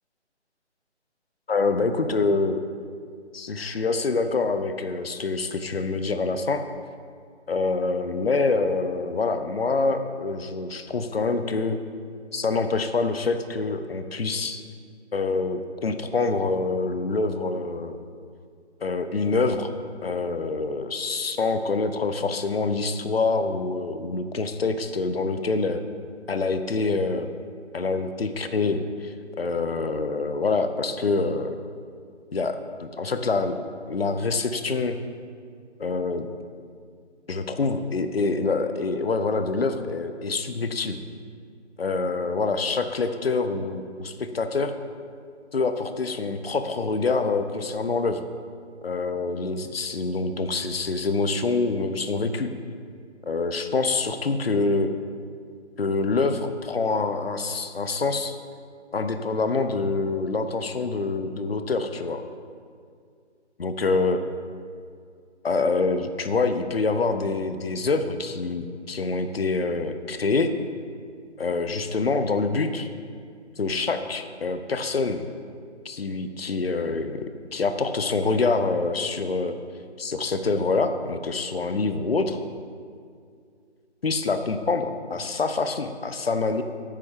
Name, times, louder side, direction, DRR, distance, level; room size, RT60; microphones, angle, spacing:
voice 1, 1.5-2.6 3.3-6.6 7.5-11.8 12.3-14.6 15.1-18.0 18.8-19.7 20.0-25.8 26.3-27.3 27.7-31.6 32.3-33.6 33.9-35.0 35.8-36.3 37.3-41.0 41.8-44.7 45.5-48.2 48.8-52.5 53.3-54.9 55.8-58.4 58.9-62.2 63.6-64.2 65.4-70.5 71.4-72.9 73.6-75.2 75.8-79.6 80.0-82.4 84.0-86.6, left 3 dB, 55° left, 9 dB, 0.6 m, -26 dB
8.6 x 8.4 x 3.6 m, 2.2 s
figure-of-eight pair, 155°, 35 cm